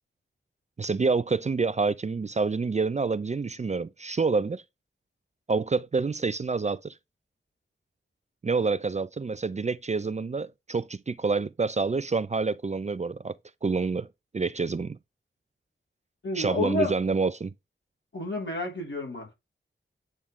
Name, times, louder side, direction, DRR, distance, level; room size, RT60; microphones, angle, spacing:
voice 1, 0.8-4.6 5.5-6.9 8.4-13.4 13.6-14.1 14.3-15.0 16.4-17.5, right 4 dB, 35° right, 0.4 m, -27 dB
voice 2, 16.2-16.9 18.1-19.3, left 2 dB, 65° left, 3.4 m, -30 dB
8.7 x 3.7 x 3.1 m
wide cardioid pair, 95°, 21 cm